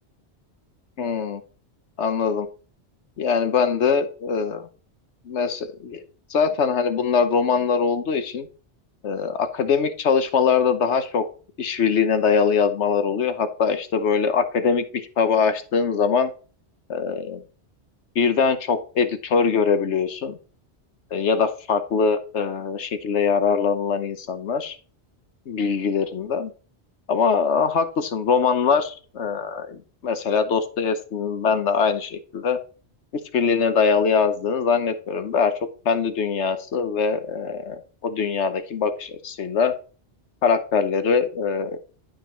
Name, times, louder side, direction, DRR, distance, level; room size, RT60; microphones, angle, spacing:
voice 1, 1.0-1.4 2.0-2.5 3.2-4.6 5.3-6.0 6.3-8.5 9.0-11.3 11.6-16.3 16.9-17.4 18.1-20.4 21.1-24.8 25.5-26.5 27.1-32.6 33.3-35.5 35.8-39.7 40.4-41.8, left 6 dB, 85° left, 11 dB, 1.3 m, -22 dB
11.5 x 5.2 x 4.3 m, 0.38 s
omnidirectional pair, 1.1 m